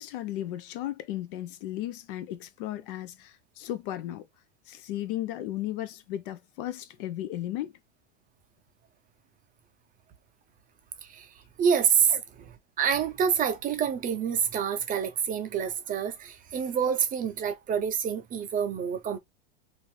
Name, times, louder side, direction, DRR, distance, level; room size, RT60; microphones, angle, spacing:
voice 1, 0.0-4.3 4.7-7.7 12.1-12.2, left 13 dB, 55° left, 0.5 m, -35 dB
voice 2, 11.6-19.2, right 7 dB, 25° right, 0.6 m, -27 dB
2.6 x 2.5 x 3.2 m
hypercardioid pair, 110°, 33 cm